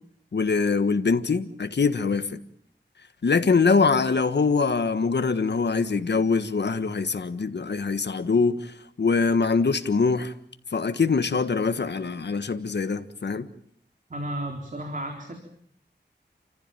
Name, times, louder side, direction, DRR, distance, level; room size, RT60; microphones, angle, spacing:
voice 1, 0.3-2.4 3.2-10.3 10.7-13.5, left 4 dB, 70° left, 1.5 m, -23 dB
voice 2, 14.1-15.5, right 1 dB, 45° right, 4.1 m, -33 dB
29.5 x 15.0 x 9.1 m
wide cardioid pair, 70°, 19 cm